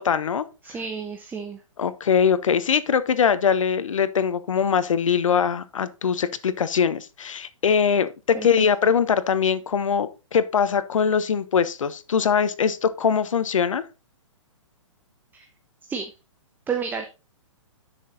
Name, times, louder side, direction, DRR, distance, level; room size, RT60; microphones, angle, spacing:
voice 1, 0.0-0.5 1.8-13.8, left 7 dB, 75° left, 1.2 m, -22 dB
voice 2, 0.6-1.6 8.3-8.5 15.3-15.5 15.9-16.1 16.7-17.1, right 6 dB, 10° right, 1.0 m, -30 dB
10.5 x 6.5 x 4.0 m
hypercardioid pair, 135°, 17 cm